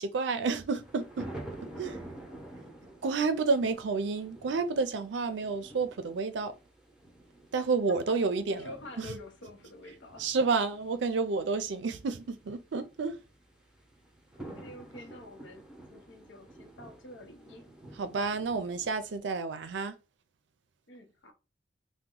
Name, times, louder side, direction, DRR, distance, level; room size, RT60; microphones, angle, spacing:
voice 1, 0.0-1.3 1.8-2.0 3.0-6.5 7.5-8.7 9.0-9.1 10.2-13.2 18.0-20.0, right 4 dB, 75° right, 0.4 m, -30 dB
sound 1, 0.6-19.2, right 1 dB, 5° right, 0.7 m, -49 dB
voice 2, 1.5-2.1 7.6-8.2 8.5-10.3 14.4-17.7 20.9-21.3, left 2 dB, 85° left, 0.8 m, -49 dB
2.9 x 2.1 x 3.7 m
head